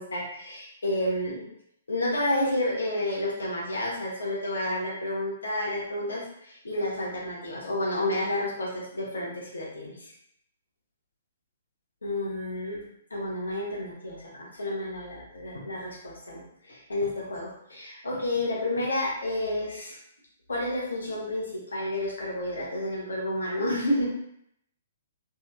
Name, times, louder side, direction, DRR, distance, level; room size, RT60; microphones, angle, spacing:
voice 1, 0.0-1.4 1.9-10.1 12.0-12.8 13.1-20.0 20.5-24.1, left 1 dB, 70° left, -4 dB, 1.1 m, -30 dB
3.5 x 2.9 x 2.2 m, 0.72 s
figure-of-eight pair, 120°, 0 cm